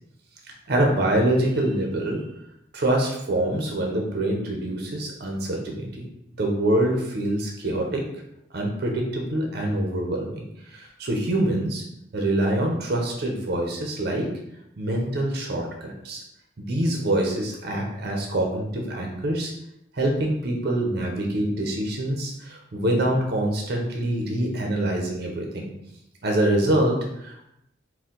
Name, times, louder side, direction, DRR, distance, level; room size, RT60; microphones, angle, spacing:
voice 1, 0.7-2.3 2.7-6.1 6.4-8.1 8.5-11.8 12.1-14.3 14.8-16.2 16.6-19.5 19.9-25.7 26.2-27.5, right 1 dB, 55° right, 1 dB, 0.6 m, -25 dB
4.3 x 2.2 x 3.8 m, 0.79 s
head